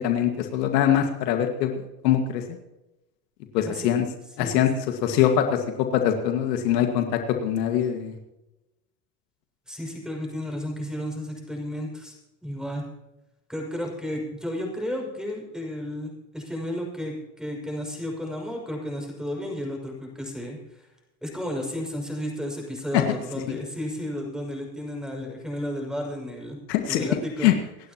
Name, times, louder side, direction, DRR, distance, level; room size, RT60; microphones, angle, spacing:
voice 1, 0.0-2.6 3.5-4.1 4.4-4.7 5.0-5.6 5.9-8.2 22.9-23.0 26.7-27.1 27.4-27.5, left 10 dB, 75° left, 5 dB, 2.0 m, -23 dB
voice 2, 9.7-12.1 12.4-12.9 13.5-20.8 21.2-26.6 26.9-27.5, equal, ahead, 1 dB, 6.3 m, -33 dB
27.0 x 12.0 x 3.0 m, 0.94 s
hypercardioid pair, 100°, 50 cm